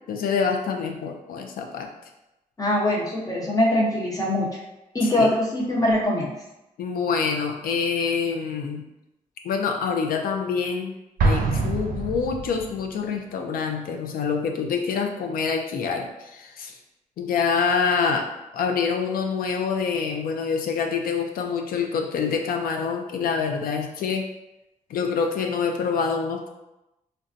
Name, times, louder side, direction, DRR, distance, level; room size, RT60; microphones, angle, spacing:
voice 1, 0.1-1.9 5.0-5.3 6.8-8.8 9.4-10.9 11.2-16.7 17.2-18.3 18.5-24.2 24.9-26.5, left 5 dB, 85° left, 4 dB, 0.5 m, -26 dB
voice 2, 2.6-4.5 4.9-6.3, left 1 dB, 25° left, -3 dB, 0.8 m, -22 dB
Explosion, 11.2-12.9, right 3 dB, 80° right, 0.5 m, -24 dB
3.8 x 2.2 x 2.5 m, 0.94 s
cardioid pair, 120°, 14 cm